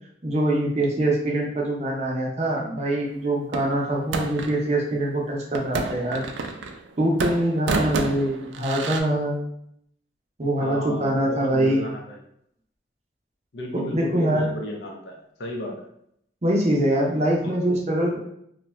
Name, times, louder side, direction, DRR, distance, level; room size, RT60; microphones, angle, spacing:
voice 1, 0.2-6.2 7.0-9.5 10.4-11.9 13.9-14.5 16.4-18.2, right 1 dB, 35° right, -1 dB, 0.6 m, -24 dB
sound 1, 3.5-4.6 5.5-6.9 7.2-9.0, right 4 dB, 85° right, 0.3 m, -29 dB
voice 2, 10.6-12.2 13.5-15.8 17.4-17.6, equal, 70° left, 1 dB, 0.6 m, -33 dB
2.6 x 2.3 x 3.1 m, 0.72 s
head